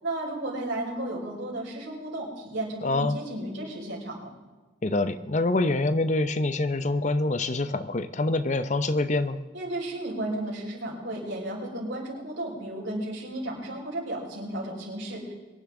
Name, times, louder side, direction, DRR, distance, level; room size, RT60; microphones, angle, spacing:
voice 1, 0.0-4.3 9.5-15.3, right 1 dB, 80° right, -3 dB, 5.3 m, -33 dB
voice 2, 2.8-3.2 4.8-9.4, left 2 dB, 40° left, 12 dB, 0.7 m, -25 dB
23.5 x 10.5 x 3.8 m, 1.3 s
head